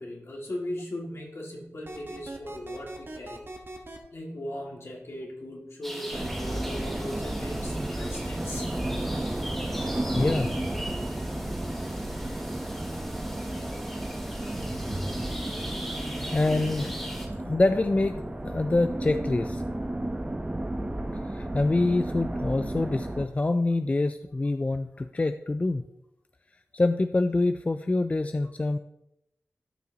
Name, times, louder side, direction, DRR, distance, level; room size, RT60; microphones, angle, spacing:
voice 1, 0.0-3.4 4.1-8.7 16.5-16.6, left 1 dB, 60° left, -2 dB, 2.1 m, -38 dB
sound 1, 1.9-4.0, right 2 dB, 50° right, 1.2 m, -41 dB
sound 2, 5.8-17.3, equal, 5° left, 1.9 m, -40 dB
sound 3, 6.1-23.3, right 1 dB, 20° right, 0.8 m, -33 dB
voice 2, 10.1-10.5 16.3-16.9 17.4-18.2 18.4-19.6 21.3-25.8 26.7-28.8, left 2 dB, 30° left, 9 dB, 0.3 m, -25 dB
12.5 x 5.7 x 2.8 m, 0.84 s
wide cardioid pair, 75°, 5 cm